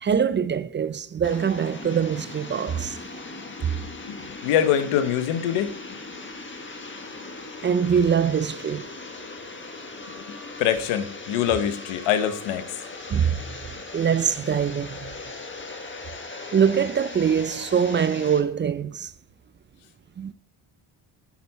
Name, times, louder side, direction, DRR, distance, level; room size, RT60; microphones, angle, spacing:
voice 1, 0.0-3.0 3.6-3.7 7.6-8.9 13.1-13.6 13.9-15.2 16.5-19.1 20.2-20.3, right 7 dB, 25° right, 0.3 m, -23 dB
sound 1, 1.2-18.4, left 3 dB, 25° left, 1.4 m, -39 dB
voice 2, 4.4-5.7 10.6-12.6, left 9 dB, 80° left, 1.1 m, -23 dB
8.5 x 6.0 x 4.2 m
supercardioid pair, 70°, 49 cm